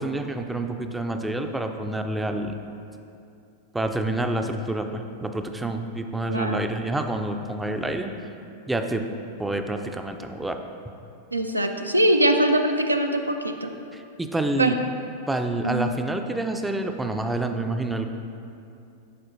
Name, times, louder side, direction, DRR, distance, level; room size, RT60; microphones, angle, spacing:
voice 1, 0.0-2.5 3.7-8.1 8.7-9.0 9.4-10.6 13.9-14.7 15.3-18.1, right 2 dB, 10° right, 6 dB, 0.4 m, -28 dB
voice 2, 6.3-6.8 11.3-13.7 14.6-14.7 15.6-15.9, right 1 dB, 85° right, 5 dB, 0.3 m, -22 dB
11.0 x 4.2 x 2.6 m, 2.6 s
figure-of-eight pair, 90°, 0 cm